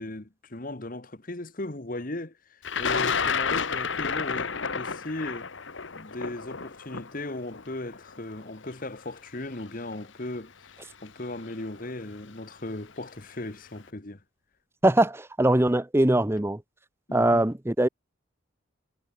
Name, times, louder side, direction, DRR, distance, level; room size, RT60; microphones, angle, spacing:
voice 1, 0.0-5.5 5.9-10.5 11.0-14.2 17.1-17.5, left 2 dB, 40° left, 1.3 m, -37 dB
Thunder, 2.6-8.7 9.6-9.7 10.8-11.1 11.4-11.9, left 5 dB, 65° left, 1.4 m, -30 dB
voice 2, 14.8-16.6 17.1-17.9, right 1 dB, 10° right, 0.6 m, -22 dB
head